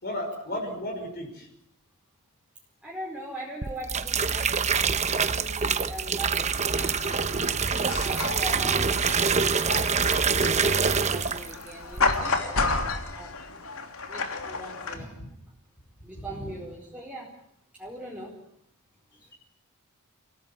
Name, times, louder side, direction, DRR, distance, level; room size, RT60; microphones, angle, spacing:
voice 1, 0.0-1.5 14.9-15.3 16.2-16.5, left 1 dB, 45° left, 1 dB, 5.7 m, -35 dB
voice 2, 2.8-7.3 8.0-13.4 14.1-15.2 16.0-17.3 17.7-18.4 19.1-19.3, right 1 dB, 5° right, -3 dB, 4.8 m, -41 dB
sound 1, 3.6-11.6 11.9-12.3, right 5 dB, 30° right, 1.0 m, -25 dB
sound 2, 6.7-15.0, left 3 dB, 70° left, 3.1 m, -32 dB
30.0 x 17.5 x 9.1 m, 0.75 s
head